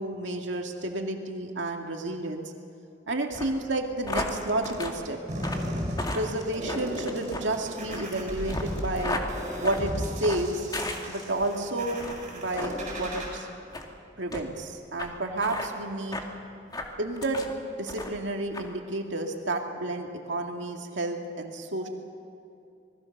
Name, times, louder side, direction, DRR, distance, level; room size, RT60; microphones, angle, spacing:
voice 1, 0.0-2.4 3.1-5.2 6.1-9.2 9.6-10.6 11.1-12.0 12.3-13.5 14.2-16.2 17.0-17.5 17.8-21.9, right 2 dB, 75° right, 2 dB, 2.3 m, -31 dB
sound 1, 3.3-11.5 11.9-12.2 12.5-12.7 13.1-13.3 13.7-13.9 14.3-14.4 15.0-15.1 15.4-15.7 16.1-16.3 16.7-17.5 17.9-18.2 18.5-18.7, left 2 dB, 20° left, 2.2 m, -35 dB
sound 2, 5.3-13.3, equal, 40° right, 7.6 m, -35 dB
26.5 x 20.5 x 6.7 m, 2.6 s
head